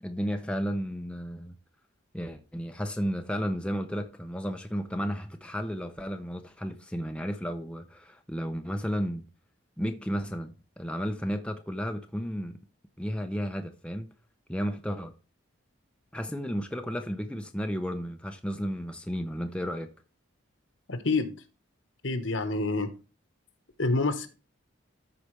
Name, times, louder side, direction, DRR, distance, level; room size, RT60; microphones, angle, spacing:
voice 1, 0.0-1.5 2.1-9.2 9.8-12.6 13.0-14.1 14.5-15.1 16.1-19.9, equal, 5° left, 0.6 m, -33 dB
voice 2, 20.9-21.3 22.0-22.9 23.8-24.3, left 3 dB, 70° left, 1.3 m, -27 dB
13.5 x 4.8 x 3.3 m
head